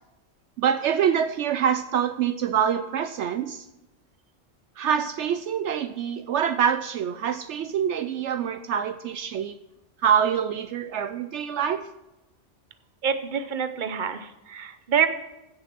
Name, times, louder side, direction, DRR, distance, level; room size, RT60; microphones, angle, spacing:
voice 1, 0.6-3.7 4.8-9.6 10.0-11.9, right 8 dB, 70° right, 11 dB, 0.9 m, -25 dB
voice 2, 13.0-15.1, right 7 dB, 45° right, 10 dB, 0.9 m, -26 dB
16.0 x 6.8 x 6.0 m, 0.94 s
omnidirectional pair, 1.3 m